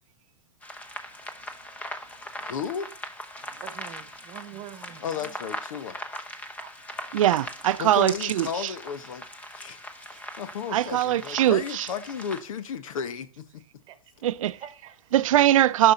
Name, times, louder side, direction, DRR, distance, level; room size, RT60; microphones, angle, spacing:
sound 1, 0.6-12.4, left 1 dB, 10° left, 0.8 m, -40 dB
voice 1, 2.4-2.9 5.0-6.0 7.8-9.2 9.5-9.8 10.1-13.4, left 7 dB, 75° left, 1.1 m, -34 dB
voice 2, 3.6-5.4 6.6-6.7 13.9-14.1 14.4-15.1, right 11 dB, 30° right, 1.2 m, -45 dB
voice 3, 7.1-8.8 10.7-11.9 14.2-14.6 15.1-15.9, right 13 dB, 75° right, 0.5 m, -22 dB
6.5 x 6.0 x 5.7 m
hypercardioid pair, 145°, 17 cm